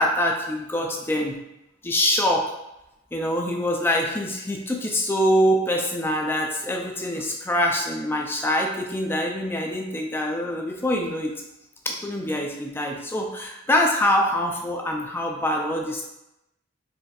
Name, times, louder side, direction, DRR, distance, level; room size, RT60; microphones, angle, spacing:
voice 1, 0.0-1.4 1.8-2.5 3.1-11.3 11.9-16.0, equal, 10° left, 1 dB, 0.4 m, -24 dB
4.1 x 3.3 x 2.3 m, 0.89 s
head